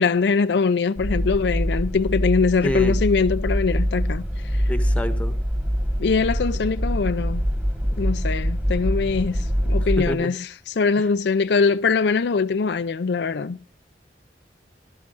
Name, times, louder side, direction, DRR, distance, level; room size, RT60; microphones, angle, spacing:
voice 1, 0.0-4.6 6.0-7.5 8.0-13.6, left 4 dB, 65° left, 0.5 m, -22 dB
sound 1, 0.9-10.1, equal, 10° right, 2.0 m, -24 dB
voice 2, 2.6-3.0 4.7-5.4 10.0-10.3 11.0-11.1, equal, 10° left, 1.2 m, -27 dB
19.0 x 11.5 x 2.5 m
head